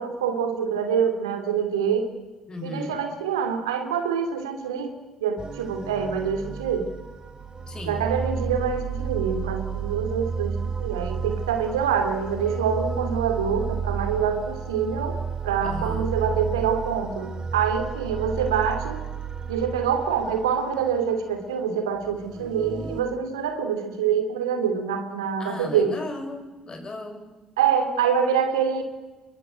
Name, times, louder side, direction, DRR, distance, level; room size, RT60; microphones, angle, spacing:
voice 1, 0.0-2.1 2.6-4.9 5.2-6.9 7.9-19.0 19.5-26.0 27.6-28.8, right 7 dB, 85° right, 7 dB, 2.7 m, -25 dB
voice 2, 2.5-3.0 7.7-8.0 15.6-16.1 25.4-27.3, left 2 dB, 30° left, 5 dB, 7.0 m, -36 dB
sound 1, 5.4-23.0, right 6 dB, 35° right, 3.4 m, -32 dB
27.5 x 23.0 x 8.3 m, 1.2 s
hypercardioid pair, 55°, 2 cm